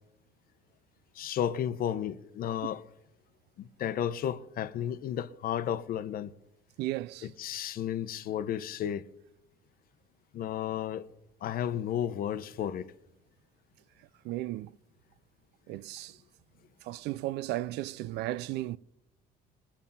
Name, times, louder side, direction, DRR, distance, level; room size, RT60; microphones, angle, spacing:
voice 1, 1.1-2.8 3.6-6.3 7.2-9.0 10.3-11.1 11.4-12.9, left 10 dB, 60° left, 0.9 m, -33 dB
voice 2, 6.8-7.3 14.2-14.7 15.7-16.2 16.8-18.8, right 16 dB, 85° right, 0.5 m, -35 dB
20.5 x 7.3 x 5.5 m
cardioid pair, 110°, 17 cm